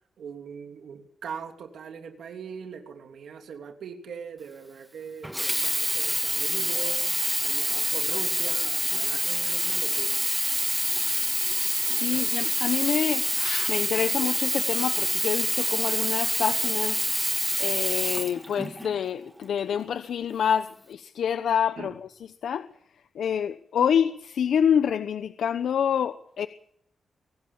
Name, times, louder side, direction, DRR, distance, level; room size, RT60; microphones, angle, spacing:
voice 1, 0.2-7.0 7.4-10.2 12.1-12.2 21.8-21.9, right 6 dB, 85° right, 5 dB, 2.9 m, -41 dB
Sink (filling or washing), 5.2-19.0 19.7-19.8, right 1 dB, 5° right, 1.5 m, -26 dB
voice 2, 11.9-17.1 17.6-22.1 22.4-22.7 23.1-26.5, left 8 dB, 85° left, 12 dB, 0.9 m, -27 dB
24.0 x 18.5 x 7.2 m, 0.68 s
wide cardioid pair, 120°, 0 cm